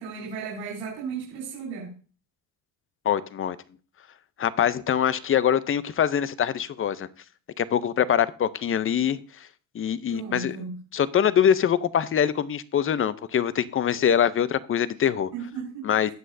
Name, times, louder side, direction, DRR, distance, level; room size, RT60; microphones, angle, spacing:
voice 1, 0.0-1.9 10.1-10.8 15.3-16.1, right 5 dB, 75° right, -5 dB, 4.8 m, -35 dB
voice 2, 3.1-3.6 4.4-7.1 7.6-9.2 9.7-10.6 10.9-15.3 15.8-16.1, left 9 dB, 30° left, 17 dB, 0.6 m, -23 dB
18.5 x 6.3 x 2.6 m, 0.38 s
supercardioid pair, 90°, 41 cm